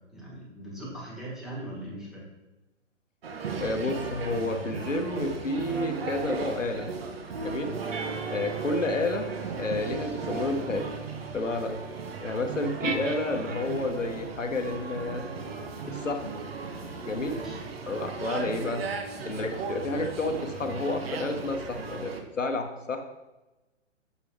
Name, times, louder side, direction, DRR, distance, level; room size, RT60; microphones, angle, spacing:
voice 1, 0.0-2.3 17.1-17.6, right 1 dB, ahead, -6 dB, 1.2 m, -40 dB
sound 1, 3.2-22.2, right 5 dB, 55° right, 0.9 m, -36 dB
voice 2, 3.6-7.0 7.4-7.8 8.3-9.3 9.6-11.0 11.3-11.8 12.2-15.3 15.8-16.3 17.0-17.4 17.9-18.8 19.2-23.0, left 2 dB, 85° left, 5 dB, 0.9 m, -30 dB
sound 2, 7.6-14.0 14.8-19.7, right 4 dB, 80° right, 0.8 m, -42 dB
6.8 x 4.5 x 3.5 m, 1.0 s
figure-of-eight pair, 125°, 37 cm